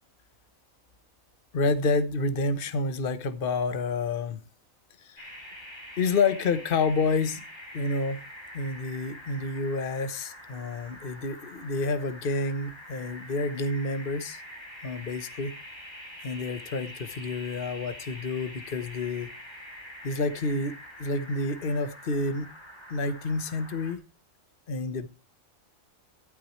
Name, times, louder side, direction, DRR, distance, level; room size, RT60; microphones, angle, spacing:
voice 1, 1.5-4.4 5.0-5.3 6.0-7.4 7.7-8.2 8.5-14.4 14.8-15.5 16.2-19.3 20.0-22.5 22.9-24.0 24.7-25.1, left 3 dB, 45° left, 1.2 m, -29 dB
sound 1, 5.2-24.0, equal, 20° left, 3.0 m, -45 dB
13.0 x 12.5 x 3.2 m
omnidirectional pair, 1.4 m